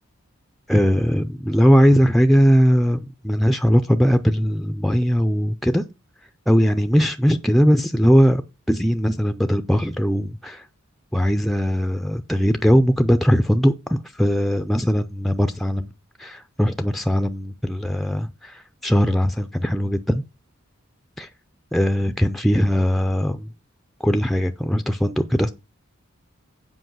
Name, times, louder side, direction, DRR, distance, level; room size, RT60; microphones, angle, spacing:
voice 1, 0.7-5.9 6.5-8.4 8.7-10.7 11.1-15.9 16.2-20.2 21.2-21.3 21.7-23.5 24.0-25.5, equal, ahead, 0.4 m, -19 dB
7.8 x 5.2 x 6.1 m
head